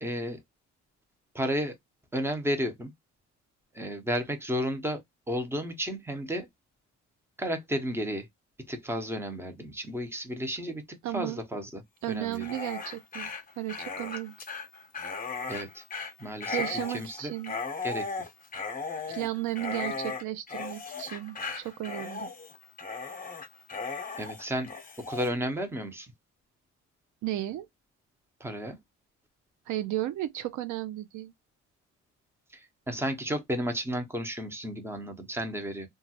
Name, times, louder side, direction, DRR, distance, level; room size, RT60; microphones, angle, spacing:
voice 1, 0.0-0.4 1.3-1.8 2.1-2.9 3.7-5.0 5.3-6.5 7.4-8.3 8.7-10.8 11.1-11.8 12.1-12.4 15.5-15.8 16.2-17.3 17.8-18.1 24.2-24.7 25.0-26.1 28.4-28.8 32.5-35.9, equal, 10° right, 0.7 m, -32 dB
voice 2, 11.0-11.4 12.0-13.3 13.6-14.3 16.5-17.6 19.1-22.3 27.2-27.7 29.7-31.3, right 15 dB, 75° right, 0.5 m, -34 dB
Dog, 12.3-25.3, left 4 dB, 30° left, 0.8 m, -37 dB
2.9 x 2.4 x 2.7 m
cardioid pair, 90°, 30 cm